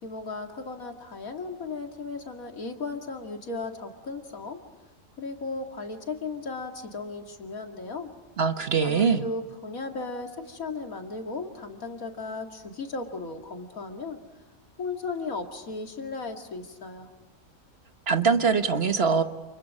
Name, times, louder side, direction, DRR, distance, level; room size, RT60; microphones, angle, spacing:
voice 1, 0.0-4.6 5.2-8.1 8.8-14.2 14.8-17.1, left 3 dB, 80° left, 4 dB, 2.6 m, -36 dB
voice 2, 8.4-9.3 18.1-19.2, right 5 dB, 50° right, 8 dB, 1.3 m, -23 dB
29.0 x 28.5 x 5.4 m, 1.3 s
omnidirectional pair, 1.4 m